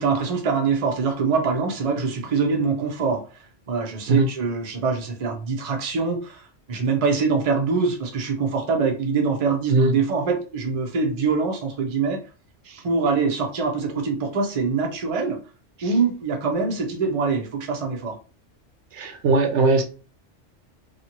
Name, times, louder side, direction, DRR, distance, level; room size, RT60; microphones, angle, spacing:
voice 1, 0.0-12.2 12.8-15.4 15.8-18.2, right 4 dB, 40° right, 0.5 m, -24 dB
voice 2, 18.9-19.8, right 3 dB, 75° right, 0.9 m, -20 dB
2.8 x 2.5 x 2.8 m
omnidirectional pair, 1.2 m